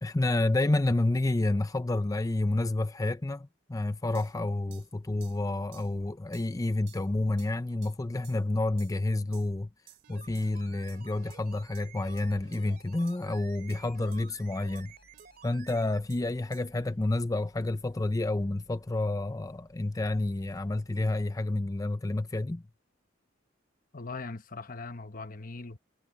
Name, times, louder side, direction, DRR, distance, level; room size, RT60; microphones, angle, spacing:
voice 1, 0.0-9.7 10.1-14.9 15.4-22.6, left 2 dB, 20° left, 0.5 m, -29 dB
sound 1, 4.1-4.3 4.7-4.9 5.2-5.4 5.7-5.9 6.3-6.5 6.9-7.1 7.4-7.5 7.8-8.0 8.2-8.4 8.8-9.0 9.3-9.5 9.9-10.1 10.3-10.5 10.9-11.0 11.3-11.4 11.7-11.8 12.2-12.3 12.5-12.6 13.1-13.2 13.7-13.8 14.1-14.2 14.8-14.9 15.2-15.3 15.7-15.8 16.1-16.2 16.5-16.6, right 14 dB, 70° right, 4.0 m, -55 dB
sound 2, 10.0-16.1 16.4-16.5, right 6 dB, 50° right, 2.6 m, -52 dB
sound 3, 13.6-21.0, right 1 dB, 85° right, 7.7 m, -64 dB
voice 2, 23.9-25.8, left 3 dB, 45° left, 1.2 m, -40 dB
head